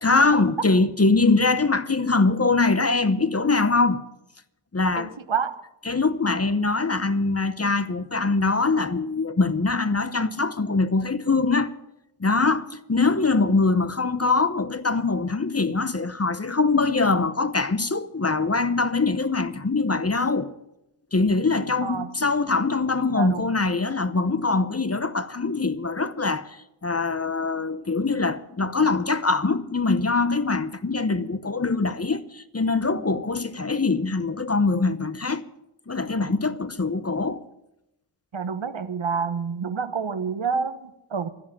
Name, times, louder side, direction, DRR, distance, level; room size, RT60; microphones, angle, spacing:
voice 1, 0.0-4.0 4.7-5.1 5.9-11.7 12.2-20.5 21.1-35.4 35.9-37.4, left 3 dB, 30° left, 0.8 m, -23 dB
voice 2, 5.0-5.6 21.8-22.3 23.1-23.5 38.3-41.3, right 6 dB, 65° right, 1.2 m, -28 dB
12.0 x 11.0 x 10.0 m
wide cardioid pair, 60°, 49 cm